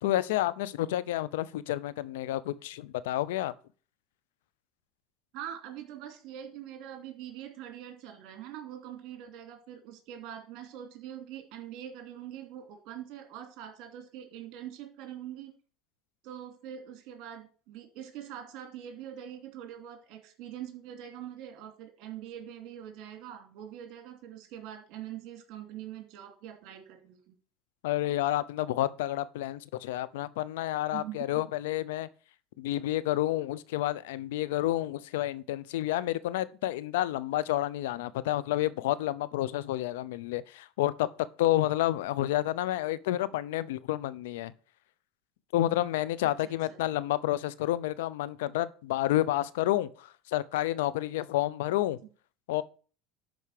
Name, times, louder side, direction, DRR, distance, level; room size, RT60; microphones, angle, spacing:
voice 1, 0.0-3.5 27.8-32.1 32.6-41.1 41.4-44.5 45.5-52.0 52.5-52.6, left 14 dB, 90° left, 0.7 m, -30 dB
voice 2, 5.3-15.5 16.2-27.3 30.9-31.4 46.2-46.8, right 10 dB, 60° right, 2.7 m, -43 dB
11.5 x 4.7 x 6.6 m
supercardioid pair, 110°, 0 cm